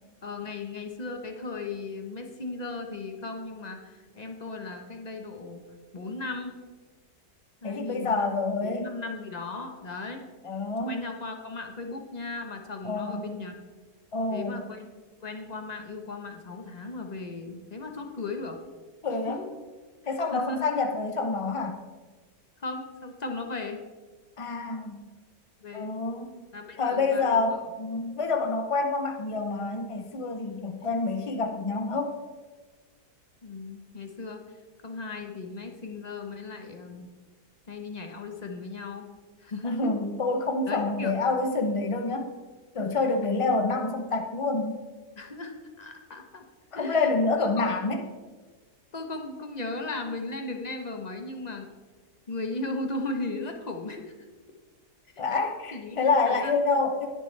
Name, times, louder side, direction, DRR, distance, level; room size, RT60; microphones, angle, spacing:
voice 1, 0.2-5.6 5.9-6.6 7.6-8.3 8.6-10.3 10.8-13.5 14.3-14.9 15.2-18.6 19.2-19.5 20.0-20.7 22.6-23.8 25.6-25.9 26.5-27.6 30.5-30.8 33.4-34.4 34.8-37.1 37.7-39.1 39.4-39.9 40.7-41.1 45.2-46.4 46.7-47.1 47.4-47.6 48.9-51.7 52.3-54.1 55.3-55.4 55.7-56.0 56.2-56.6, left 3 dB, 30° left, 4 dB, 0.9 m, -36 dB
voice 2, 7.6-8.9 10.4-11.0 12.8-13.3 14.1-14.6 19.0-19.4 20.1-21.8 24.4-25.1 25.7-26.3 26.8-32.1 39.6-42.3 42.7-44.8 46.7-48.0 55.2-57.1, left 3 dB, 55° left, 5 dB, 0.3 m, -27 dB
20.0 x 6.8 x 3.3 m, 1.3 s
omnidirectional pair, 1.8 m